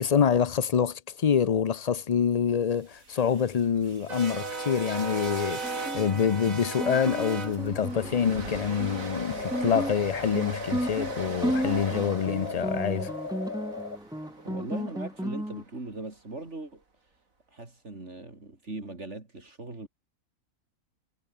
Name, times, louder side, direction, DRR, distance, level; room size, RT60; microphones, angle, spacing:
voice 1, 0.0-13.1, left 7 dB, 40° left, 0.5 m, -26 dB
sound 1, 2.8-15.0, right 3 dB, 80° right, 3.6 m, -38 dB
Guitar, 5.6-15.6, equal, 5° right, 1.7 m, -34 dB
sound 2, 8.9-14.0, left 4 dB, 85° left, 3.2 m, -37 dB
voice 2, 14.4-16.8 17.5-19.9, right 2 dB, 55° right, 4.0 m, -40 dB
omnidirectional pair, 1.4 m